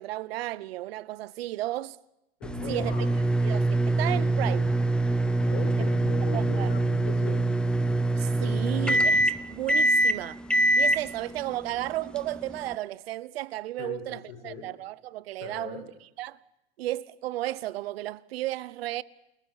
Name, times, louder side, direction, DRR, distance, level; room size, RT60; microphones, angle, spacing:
voice 1, 0.0-2.0 2.7-2.9 3.4-4.7 5.8-5.9 6.3-6.7 8.2-10.4 10.8-15.9 16.2-16.4 16.8-19.0, right 15 dB, 75° right, 0.9 m, -34 dB
voice 2, 2.4-3.1 5.4-7.5 13.8-14.7 15.4-15.8, left 6 dB, 70° left, 6.8 m, -39 dB
sound 1, 2.4-12.7, right 1 dB, 5° left, 0.8 m, -25 dB
29.5 x 14.5 x 9.8 m
supercardioid pair, 135°, 31 cm